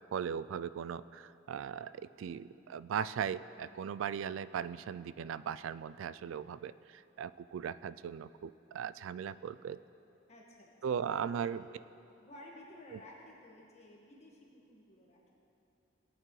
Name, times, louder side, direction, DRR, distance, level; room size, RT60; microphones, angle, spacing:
voice 1, 0.1-9.8 10.8-11.6 12.9-13.0, right 7 dB, 85° right, 16 dB, 0.3 m, -38 dB
voice 2, 10.3-11.7 12.2-15.4, left 1 dB, 35° left, -3 dB, 1.6 m, -55 dB
18.0 x 9.1 x 3.2 m, 2.9 s
head